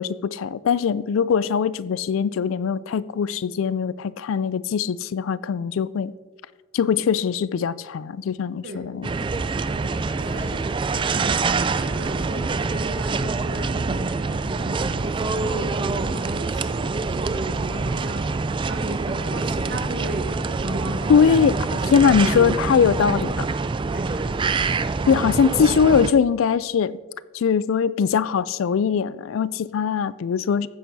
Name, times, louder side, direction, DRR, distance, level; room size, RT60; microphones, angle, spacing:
voice 1, 0.0-6.1 6.7-9.1 21.1-23.4 25.1-27.0 27.3-30.7, left 6 dB, 65° left, 0.3 m, -21 dB
sound 1, 9.0-26.1, right 4 dB, 25° right, 0.3 m, -25 dB
voice 2, 9.7-21.3 21.8-23.4 23.9-24.6, right 1 dB, 55° right, 1.1 m, -35 dB
sound 2, 13.1-22.9, right 1 dB, 80° right, 1.0 m, -43 dB
15.0 x 10.0 x 2.7 m
head